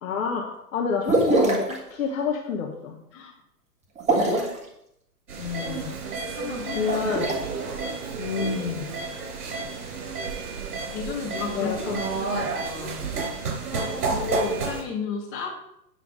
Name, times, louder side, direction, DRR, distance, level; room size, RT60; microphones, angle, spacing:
voice 1, 0.0-3.0 5.4-5.9 6.7-7.3 8.2-8.9 11.5-12.0, left 6 dB, 55° left, 2 dB, 1.4 m, -28 dB
sound 1, 1.1-1.8 4.0-4.6 6.7-7.3, right 2 dB, 15° right, 1.6 m, -22 dB
voice 2, 4.2-4.5 6.3-6.8 10.9-13.0 13.7-15.5, left 5 dB, 25° left, -2 dB, 3.0 m, -33 dB
sound 2, 5.3-14.8, right 4 dB, 65° right, 3.8 m, -31 dB
9.3 x 5.7 x 5.2 m, 0.80 s
hypercardioid pair, 120°, 47 cm